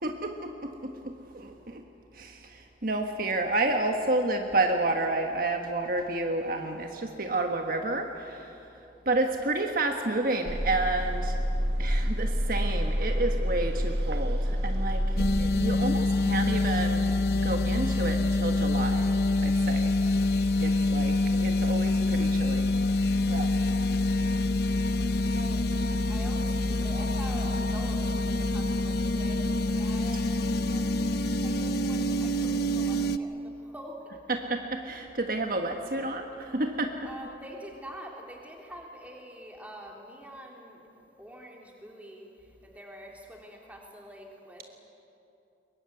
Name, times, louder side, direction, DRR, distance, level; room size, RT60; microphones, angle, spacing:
voice 1, 0.0-1.8 2.1-8.6 9.0-11.4 11.8-17.1 17.4-19.9 20.6-22.7 23.3-23.5 34.3-37.1, right 2 dB, 55° right, 4 dB, 1.4 m, -30 dB
sound 1, 10.5-15.7, equal, 75° right, 1.5 m, -28 dB
sound 2, 15.2-33.2, left 2 dB, 60° left, 0.9 m, -26 dB
voice 2, 25.3-34.2 37.0-44.6, equal, 10° right, -1 dB, 3.6 m, -46 dB
22.5 x 21.5 x 9.6 m, 2.8 s
head